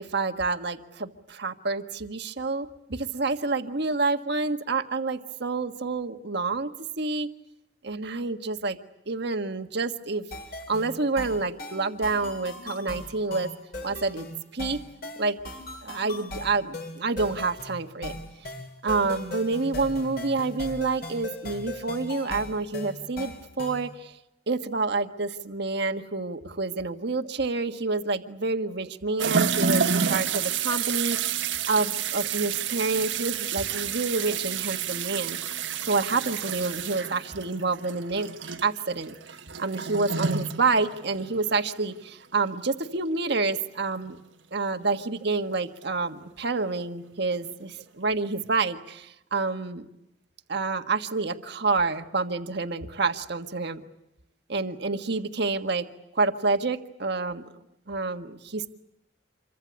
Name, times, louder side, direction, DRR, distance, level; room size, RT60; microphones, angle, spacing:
voice 1, 0.0-7.3 7.8-8.8 9.1-10.2 10.7-13.5 13.8-14.3 14.5-14.8 15.2-15.4 15.8-18.2 18.8-24.1 24.5-38.3 38.6-39.1 39.6-44.2 44.5-49.9 50.5-53.8 54.5-55.9 56.1-57.4 57.9-58.7, right 3 dB, 65° right, 7 dB, 1.6 m, -28 dB
sound 1, 10.3-23.9, left 2 dB, 55° left, 8.0 m, -39 dB
sound 2, 29.2-41.6 41.9-42.0 44.0-44.1 45.8-45.9 47.4-47.5 48.4-48.5, right 7 dB, 85° right, 1.6 m, -29 dB
27.5 x 24.0 x 8.3 m, 0.84 s
head